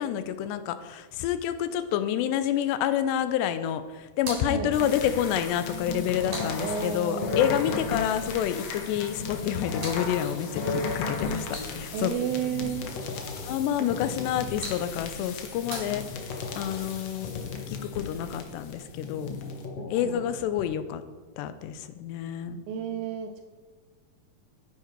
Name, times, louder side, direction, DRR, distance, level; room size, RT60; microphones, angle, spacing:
voice 1, 0.0-12.1 13.5-16.0 16.6-17.3 17.7-19.4 19.9-21.0 21.4-22.6, left 10 dB, 85° left, 11 dB, 2.9 m, -28 dB
sound 1, 4.1-7.2 9.2-12.1 14.1-16.6, right 2 dB, 50° right, 5.5 m, -44 dB
sound 2, 4.7-20.6, left 4 dB, 70° left, 1.5 m, -35 dB
voice 2, 6.6-7.4 11.9-12.9 13.8-14.0 19.8-20.2 22.7-23.3, right 7 dB, 80° right, 6 dB, 2.3 m, -32 dB
13.0 x 9.7 x 4.6 m, 1.3 s
omnidirectional pair, 4.8 m